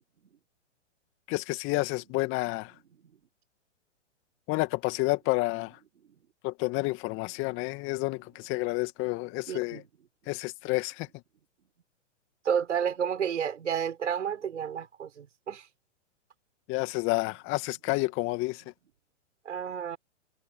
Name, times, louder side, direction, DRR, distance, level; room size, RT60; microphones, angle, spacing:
voice 1, 1.3-2.7 4.5-5.7 6.4-9.8 10.3-11.1 16.7-18.6, left 23 dB, 35° left, 2.3 m, -30 dB
voice 2, 9.5-9.8 12.5-15.7 19.5-20.0, right 8 dB, 75° right, 6.8 m, -31 dB
hypercardioid pair, 125°, 37 cm